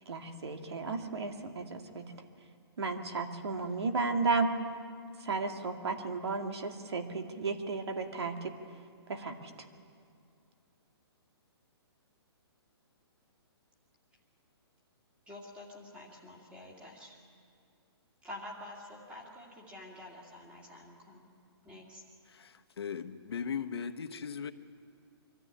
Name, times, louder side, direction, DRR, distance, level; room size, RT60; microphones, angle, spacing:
voice 1, 0.1-2.1 2.8-4.5 5.2-8.5 9.1-9.5, right 4 dB, 75° right, 5 dB, 2.3 m, -33 dB
voice 2, 15.3-17.1 18.2-21.3 21.6-22.0, left 1 dB, 5° right, -1 dB, 2.2 m, -48 dB
voice 3, 22.3-24.5, left 6 dB, 70° left, 6 dB, 1.2 m, -38 dB
24.0 x 14.0 x 9.9 m, 2.5 s
hypercardioid pair, 175°, 14 cm